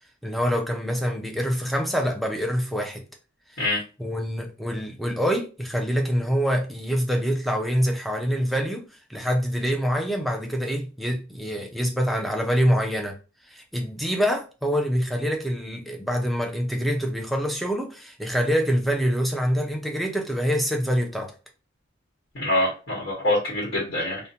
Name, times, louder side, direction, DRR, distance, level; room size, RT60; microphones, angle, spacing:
voice 1, 0.2-3.0 3.5-13.2 13.5-21.3, equal, ahead, 0.4 m, -25 dB
voice 2, 22.3-24.2, left 1 dB, 55° left, 1.1 m, -25 dB
2.5 x 2.1 x 2.8 m
head